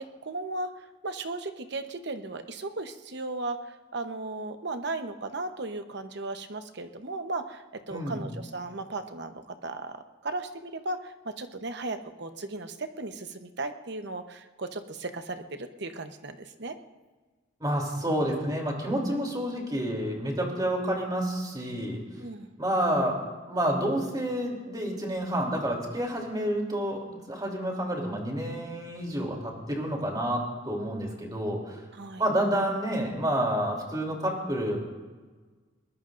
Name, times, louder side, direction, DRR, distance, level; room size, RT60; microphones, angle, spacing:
voice 1, 0.0-16.8 19.0-19.2 22.2-22.5 31.9-32.2, right 2 dB, 60° right, 7 dB, 1.0 m, -36 dB
voice 2, 7.9-8.2 17.6-22.0 22.6-23.2 23.5-31.8 32.2-34.8, right 1 dB, 20° right, 0 dB, 3.1 m, -29 dB
22.5 x 19.5 x 2.6 m, 1.3 s
head